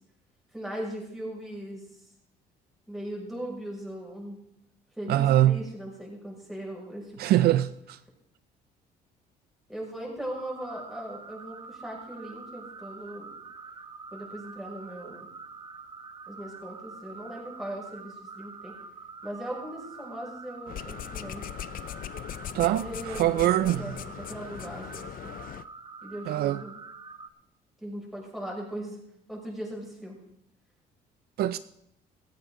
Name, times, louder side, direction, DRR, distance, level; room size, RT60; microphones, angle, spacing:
voice 1, 0.5-1.8 2.9-4.4 5.0-7.1 9.7-13.3 14.1-15.3 16.3-18.7 19.2-21.4 22.6-25.3 26.0-26.7 27.8-29.0 29.3-30.2, right 1 dB, ahead, 6.2 m, -39 dB
voice 2, 5.1-5.6 7.2-8.0 22.5-24.0 26.3-26.6 31.4-31.6, right 13 dB, 70° right, 0.5 m, -23 dB
sound 1, 10.3-27.3, right 4 dB, 25° right, 1.1 m, -45 dB
sound 2, 20.7-25.6, left 12 dB, 55° left, 0.5 m, -40 dB
16.5 x 14.5 x 3.8 m
cardioid pair, 110°, 17 cm